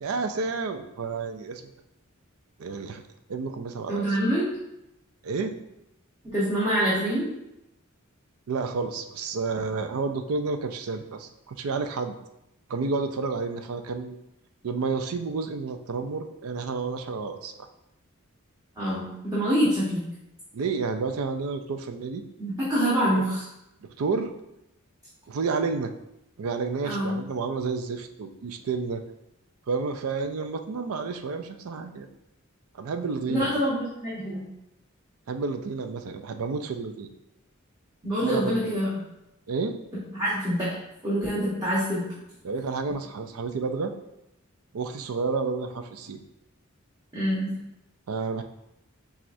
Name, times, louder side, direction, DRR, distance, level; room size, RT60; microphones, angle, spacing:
voice 1, 0.0-1.6 2.6-3.0 3.3-4.1 5.2-5.6 8.5-12.1 12.7-14.2 14.6-17.7 20.5-22.2 23.2-23.3 23.8-24.3 25.3-25.9 26.4-29.0 29.7-32.1 32.7-33.6 35.3-37.1 38.2-38.6 39.5-39.8 42.4-43.9 44.7-46.2 48.1-48.4, right 4 dB, 85° right, 8 dB, 0.4 m, -30 dB
voice 2, 3.9-4.5 6.2-7.3 18.8-20.0 22.4-23.4 26.8-27.2 33.3-34.4 38.0-38.9 40.1-40.7 41.0-42.0 47.1-47.6, equal, 15° right, -10 dB, 1.1 m, -25 dB
7.2 x 2.4 x 2.6 m, 0.86 s
head